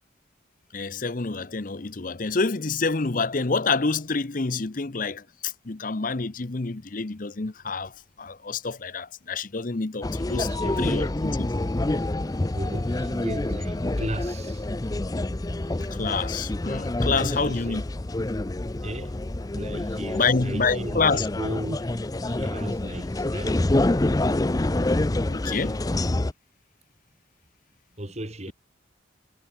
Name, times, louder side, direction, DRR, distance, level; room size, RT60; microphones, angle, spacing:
voice 1, 0.7-10.5 10.8-11.5 15.9-17.8 19.9-21.3 25.2-25.8, left 4 dB, 45° left, 0.8 m, -27 dB
sound 1, 10.0-26.3, left 2 dB, 20° left, 0.5 m, -27 dB
voice 2, 10.3-11.1 12.5-14.6 17.0-17.8 18.8-19.2 19.5-23.7 28.0-28.5, right 1 dB, 35° right, 2.4 m, -36 dB
head